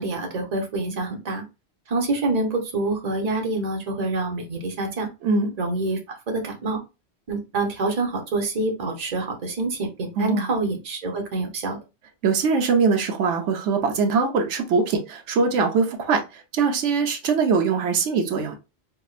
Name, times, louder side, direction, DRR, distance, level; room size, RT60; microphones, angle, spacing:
voice 1, 0.0-1.4 1.9-5.1 5.6-6.8 7.3-11.8, right 2 dB, 40° right, 0.9 m, -26 dB
voice 2, 5.2-5.6 10.2-10.5 12.2-18.6, right 4 dB, 85° right, 1.0 m, -22 dB
4.6 x 2.3 x 2.4 m
omnidirectional pair, 1.2 m